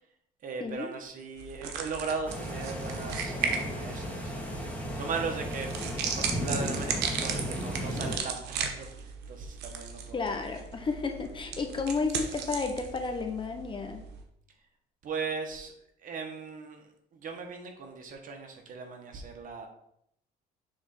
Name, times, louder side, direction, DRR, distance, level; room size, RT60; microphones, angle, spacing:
voice 1, 0.4-4.3 4.9-8.9 9.3-10.2 15.0-15.7 16.0-19.7, right 4 dB, 50° right, 3 dB, 1.4 m, -38 dB
sound 1, 1.4-14.2, right 6 dB, 85° right, 1.1 m, -37 dB
sound 2, 2.3-8.2, equal, 10° left, 2.0 m, -35 dB
voice 2, 10.1-14.0, left 4 dB, 30° left, 5 dB, 1.0 m, -32 dB
7.2 x 3.5 x 5.4 m, 0.74 s
cardioid pair, 110°, 17 cm